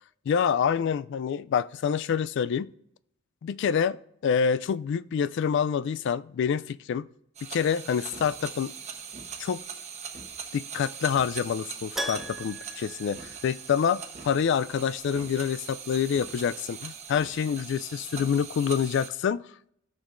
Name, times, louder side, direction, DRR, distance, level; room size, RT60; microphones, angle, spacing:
voice 1, 0.3-2.7 3.4-7.1 7.5-8.7 9.4-9.6 10.5-19.4, left 7 dB, 65° left, 18 dB, 0.3 m, -27 dB
sound 1, 7.3-19.1, right 6 dB, 35° right, 1.0 m, -41 dB
Keyboard (musical), 12.0-14.0 14.3-14.4 17.1-17.2 17.4-17.5, right 1 dB, ahead, 0.4 m, -38 dB
13.5 x 6.3 x 2.5 m, 0.73 s
head